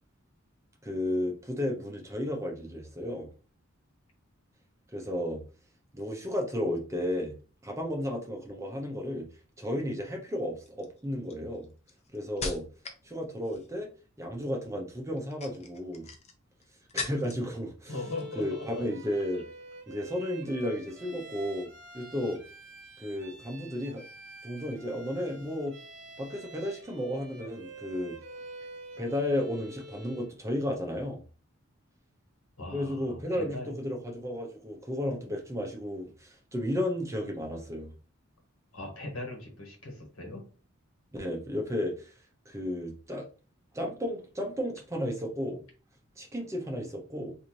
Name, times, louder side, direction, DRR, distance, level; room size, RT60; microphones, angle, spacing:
voice 1, 0.8-3.3 4.9-5.4 5.9-7.4 7.6-9.3 9.6-11.7 12.1-12.6 13.0-13.9 14.2-16.1 16.9-17.9 18.3-19.4 19.9-21.7 21.9-22.4 23.0-24.0 24.4-25.8 26.2-28.2 29.0-31.2 32.7-37.9 41.1-42.1 42.5-43.3 43.7-45.6 46.2-47.3, left 1 dB, 15° right, 0.6 m, -33 dB
sound 1, 9.6-9.9 10.7-13.1 13.3-13.9 15.1-17.5 17.8-18.5 18.8-19.0, left 4 dB, 30° left, 0.5 m, -41 dB
Bowed string instrument, 17.8-30.4, right 2 dB, 60° right, 0.8 m, -47 dB
voice 2, 17.9-18.9 32.6-33.8 38.7-40.4, left 2 dB, 90° left, 1.4 m, -39 dB
3.9 x 2.5 x 3.1 m
head